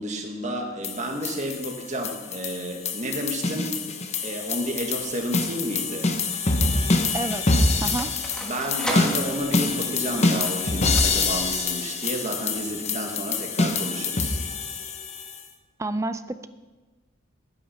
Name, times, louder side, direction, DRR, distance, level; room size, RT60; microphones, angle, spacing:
voice 1, 0.0-3.8 4.2-6.1 8.4-14.4, right 1 dB, 35° right, 2 dB, 1.6 m, -31 dB
sound 1, 0.8-15.4, left 3 dB, 35° left, 0.9 m, -26 dB
sound 2, 5.1-5.2 6.1-11.6, equal, 5° left, 1.5 m, -37 dB
voice 2, 7.1-8.1 15.8-16.5, right 2 dB, 15° right, 12 dB, 0.4 m, -30 dB
12.0 x 9.4 x 5.6 m, 1.3 s
head